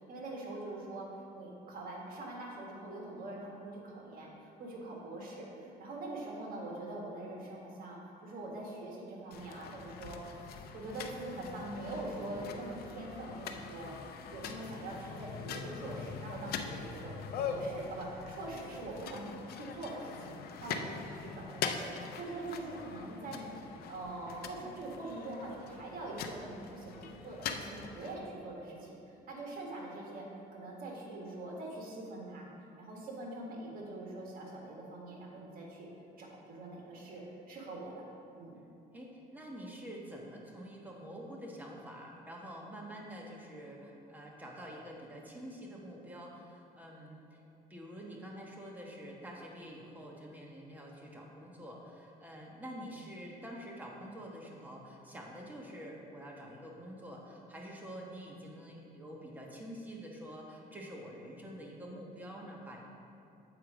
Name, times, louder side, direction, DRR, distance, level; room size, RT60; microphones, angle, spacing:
voice 1, 0.1-1.0 1.3-4.3 4.6-10.2 10.5-13.9 14.3-32.5 32.8-35.9 36.2-37.9 38.4-38.6, right 2 dB, 60° right, -2 dB, 1.8 m, -43 dB
sound 1, 9.3-28.2, left 6 dB, 65° left, 0.6 m, -43 dB
voice 2, 38.9-47.4 47.7-62.8, equal, 10° right, -2 dB, 1.3 m, -47 dB
7.9 x 4.6 x 5.0 m, 2.7 s
cardioid pair, 110°, 17 cm